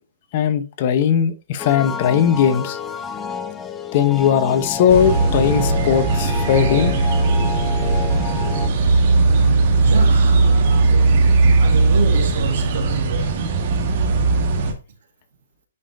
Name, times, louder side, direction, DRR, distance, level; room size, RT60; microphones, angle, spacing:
voice 1, 0.3-2.8 3.9-7.0, left 8 dB, 45° left, 0.9 m, -18 dB
sound 1, 1.6-8.7, left 6 dB, 15° left, 0.7 m, -29 dB
sound 2, 4.9-14.7, right 3 dB, 45° right, 1.8 m, -17 dB
voice 2, 9.8-11.3 11.6-13.3, right 5 dB, 65° right, 1.9 m, -29 dB
9.7 x 5.1 x 2.7 m
hypercardioid pair, 140°, 0 cm